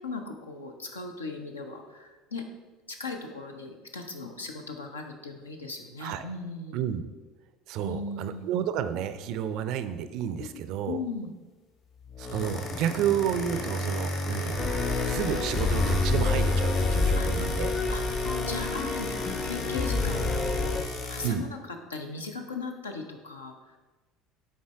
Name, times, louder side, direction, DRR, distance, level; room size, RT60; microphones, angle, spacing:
voice 1, 0.0-2.4 2.9-6.8 7.8-8.5 10.4-11.3 17.1-17.3 17.9-18.0 18.5-23.8, left 3 dB, 85° left, 4 dB, 0.6 m, -38 dB
voice 2, 6.7-7.0 7.7-11.0 12.2-14.8 15.1-17.7 21.2-21.5, right 9 dB, 55° right, 12 dB, 0.4 m, -31 dB
sound 1, 12.0-21.3, left 1 dB, 50° left, 1.4 m, -33 dB
sound 2, 14.6-20.8, left 3 dB, 30° left, 0.7 m, -28 dB
7.3 x 4.3 x 3.5 m, 1.2 s
figure-of-eight pair, 65°, 0 cm